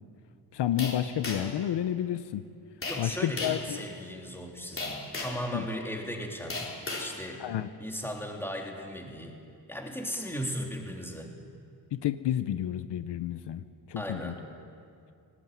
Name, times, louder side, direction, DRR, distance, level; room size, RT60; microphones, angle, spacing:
voice 1, 0.5-2.4 3.0-3.8 5.5-5.6 7.4-7.7 11.9-13.6 13.9-14.3, left 11 dB, 75° left, 12 dB, 0.8 m, -30 dB
sound 1, 0.8-1.6 2.8-3.1 3.4-3.7 4.8-5.5 6.5-7.1, left 3 dB, 30° left, 4.0 m, -35 dB
voice 2, 2.9-6.5 7.0-7.4 7.8-9.3 9.7-11.3 13.9-14.4, equal, 5° left, 0 dB, 3.4 m, -37 dB
18.5 x 18.5 x 9.3 m, 2.4 s
cardioid pair, 105°, 41 cm